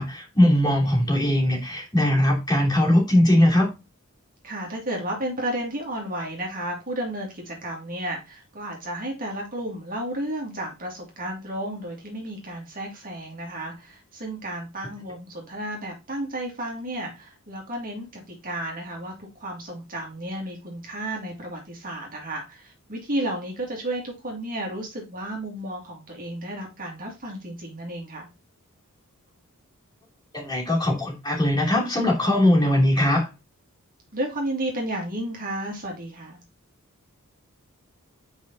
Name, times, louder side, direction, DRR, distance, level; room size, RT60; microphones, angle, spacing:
voice 1, 0.0-3.7 30.3-33.3, left 1 dB, 20° left, -2 dB, 2.9 m, -20 dB
voice 2, 4.4-28.3 34.1-36.4, right 1 dB, 40° right, 0 dB, 2.2 m, -32 dB
5.3 x 5.0 x 3.8 m, 0.26 s
head